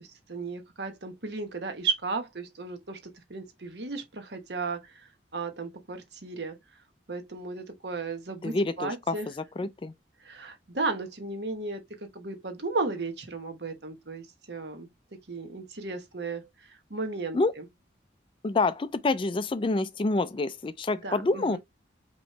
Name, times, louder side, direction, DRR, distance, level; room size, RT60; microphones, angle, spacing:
voice 1, 0.0-6.6 7.1-9.3 9.6-9.7 10.2-11.8 12.1-14.9 15.3-17.6 21.0-21.6, right 3 dB, 65° right, 1.2 m, -35 dB
voice 2, 8.4-9.2 9.6-9.9 17.3-17.5 18.4-21.6, left 3 dB, 30° left, 0.3 m, -27 dB
5.3 x 3.0 x 3.2 m
head